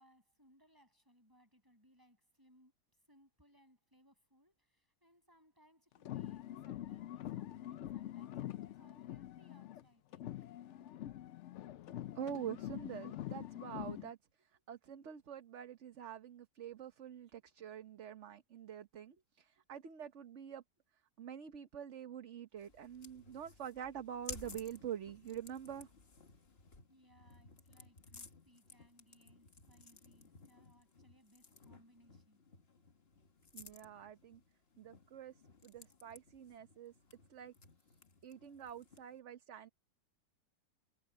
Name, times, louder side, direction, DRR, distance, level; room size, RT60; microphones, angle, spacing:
voice 1, 0.0-2.7 3.1-10.3 26.9-32.4, equal, 10° right, 7.6 m, -68 dB
sound 1, 5.9-9.8 10.1-14.1, left 13 dB, 70° left, 0.7 m, -45 dB
voice 2, 12.1-14.2 14.7-20.6 21.2-25.9 33.5-34.4 34.8-35.3 35.6-36.9 37.3-37.5 38.2-39.7, right 9 dB, 50° right, 1.2 m, -46 dB
sound 2, 22.6-39.2, left 4 dB, 40° left, 1.8 m, -57 dB
omnidirectional pair, 1.7 m